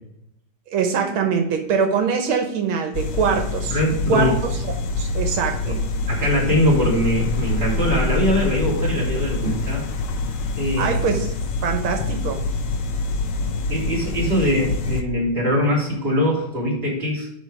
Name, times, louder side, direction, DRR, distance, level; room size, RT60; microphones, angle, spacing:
voice 1, 0.7-3.8 4.1-4.5 5.0-5.8 10.8-11.3 11.6-12.5, right 6 dB, 90° right, 4 dB, 1.9 m, -23 dB
sound 1, 2.9-15.0, left 3 dB, 55° left, 0.9 m, -25 dB
voice 2, 3.7-4.3 5.6-5.8 6.1-9.8 10.6-11.0 13.4-17.3, equal, 25° right, -5 dB, 3.4 m, -22 dB
11.0 x 3.9 x 4.8 m, 0.77 s
omnidirectional pair, 2.2 m